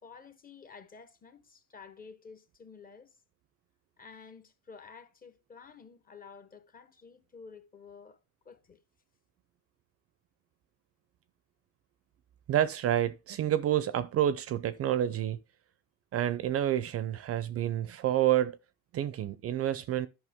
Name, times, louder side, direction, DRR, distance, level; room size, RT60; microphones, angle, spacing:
voice 1, 0.0-3.1 4.0-8.2 8.4-8.8, left 5 dB, 25° left, 1.1 m, -51 dB
voice 2, 12.5-15.4 16.1-18.6 18.9-20.1, right 11 dB, 40° right, 0.6 m, -28 dB
11.0 x 5.9 x 3.6 m
cardioid pair, 120°, 35 cm